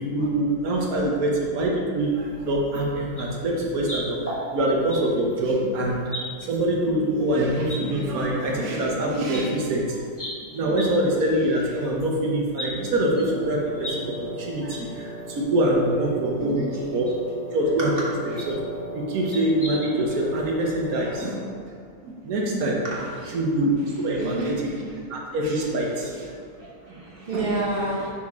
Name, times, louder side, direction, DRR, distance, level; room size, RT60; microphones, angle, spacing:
voice 1, 0.0-6.0 6.4-10.3 10.5-17.0 17.5-17.9 18.5-18.6 18.9-21.5 22.0-22.8 23.3-26.3 27.3-27.5, right 1 dB, 70° right, -1 dB, 1.4 m, -25 dB
sound 1, 2.7-2.8 3.1-3.2 3.8-5.0 5.3-5.5 6.1-6.6 7.1-7.2 7.7-7.8 9.0-9.1 9.3-9.4 10.1-10.3 10.7-10.9 11.2-11.3 11.6-11.7 12.6-12.7 13.2-13.9 14.2-14.3 14.7-14.8 15.2-15.3 16.3-16.4 17.1-17.2 18.4-18.6 19.3-20.2 20.5-20.6 20.9-21.0, equal, 10° left, 1.4 m, -35 dB
Wind instrument woodwind instrument, 13.2-21.7, right 1 dB, 45° left, 1.1 m, -38 dB
voice 2, 16.4-16.7 22.8-23.3 24.1-24.5 24.8-24.9 25.9-26.1 26.5-28.1, right 2 dB, 40° right, -5 dB, 1.0 m, -30 dB
6.2 x 4.8 x 3.5 m, 2.2 s
omnidirectional pair, 1.6 m